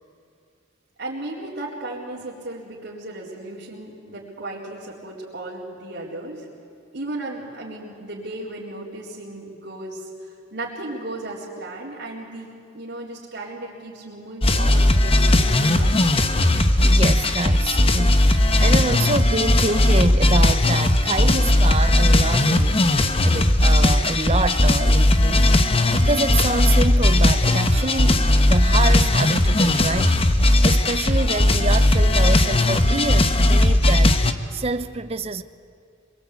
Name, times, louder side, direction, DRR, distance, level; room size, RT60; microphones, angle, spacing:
voice 1, 1.0-6.5 6.9-12.5 12.7-16.5, right 2 dB, 60° right, 4.1 m, -35 dB
sound 1, 14.4-34.3, left 1 dB, 30° left, 1.1 m, -17 dB
voice 2, 16.8-25.6 25.9-34.2 34.5-35.4, right 3 dB, 30° right, 0.8 m, -27 dB
26.0 x 23.0 x 8.4 m
head